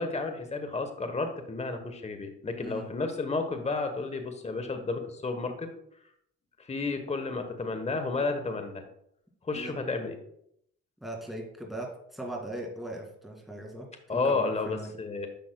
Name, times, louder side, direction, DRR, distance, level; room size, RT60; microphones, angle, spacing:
voice 1, 0.0-5.7 6.6-8.8 9.4-10.2 14.1-15.3, left 3 dB, 20° left, 7 dB, 1.1 m, -31 dB
voice 2, 9.5-9.9 11.0-13.9 14.2-15.0, right 1 dB, ahead, -1 dB, 2.2 m, -39 dB
10.0 x 6.0 x 2.2 m, 0.72 s
cardioid pair, 90°, 30 cm